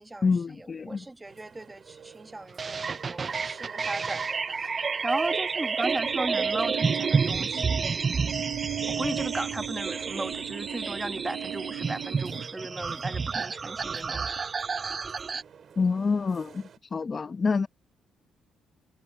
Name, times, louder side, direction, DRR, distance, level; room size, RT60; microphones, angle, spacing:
voice 1, 0.2-1.1 15.8-17.7, left 4 dB, 35° left, 0.8 m, -27 dB
voice 2, 0.9-7.9 8.9-14.4, right 2 dB, 15° right, 1.3 m, -36 dB
sound 1, 1.2-16.8, right 7 dB, 55° right, 5.6 m, -52 dB
sound 2, 2.6-15.4, right 5 dB, 35° right, 0.4 m, -30 dB
sound 3, 5.9-12.5, right 12 dB, 90° right, 0.8 m, -38 dB
cardioid pair, 90°, 0 cm